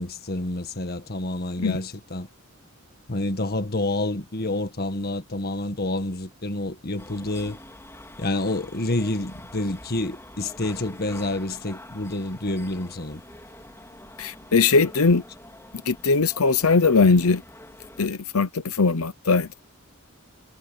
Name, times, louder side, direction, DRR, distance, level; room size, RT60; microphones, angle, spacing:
voice 1, 0.0-2.3 3.1-7.6 8.2-13.2, left 2 dB, 45° left, 1.7 m, -28 dB
sound 1, 7.0-18.1, left 1 dB, 15° left, 3.6 m, -46 dB
voice 2, 14.2-15.2 15.9-17.4 18.0-19.5, left 4 dB, 85° left, 0.9 m, -20 dB
head